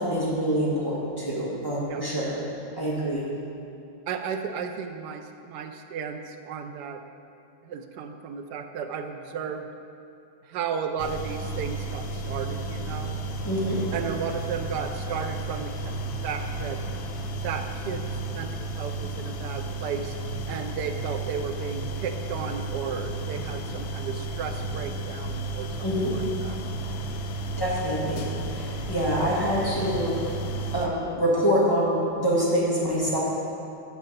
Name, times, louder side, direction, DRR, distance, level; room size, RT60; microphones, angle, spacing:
voice 1, 0.0-2.4 2.7-3.3 13.5-13.8 25.8-26.1 27.6-30.4 30.7-33.2, equal, 15° left, -7 dB, 1.3 m, -26 dB
voice 2, 4.1-7.0 7.6-9.7 10.4-13.2 13.9-15.9 16.2-16.8 17.4-20.1 20.5-26.6, right 6 dB, 75° right, 6 dB, 1.0 m, -34 dB
sound 1, 11.0-30.9, right 2 dB, 90° left, 1.4 m, -33 dB
6.7 x 5.5 x 6.6 m, 2.7 s
omnidirectional pair, 2.1 m